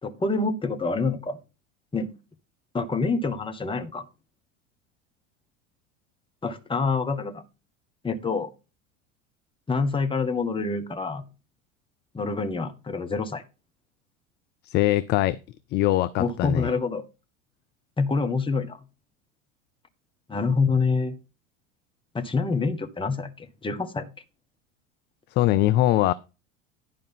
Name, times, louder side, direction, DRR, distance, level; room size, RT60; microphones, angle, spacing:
voice 1, 0.0-1.4 1.9-2.1 2.7-4.0 6.4-7.4 8.0-8.5 9.7-11.2 12.1-13.4 16.2-17.0 18.0-18.8 20.3-21.2 22.1-24.1, left 4 dB, 15° left, 1.3 m, -26 dB
voice 2, 14.6-15.4 15.7-16.7 25.4-26.1, left 15 dB, 30° left, 0.4 m, -22 dB
11.0 x 5.2 x 5.7 m
figure-of-eight pair, 75°, 38 cm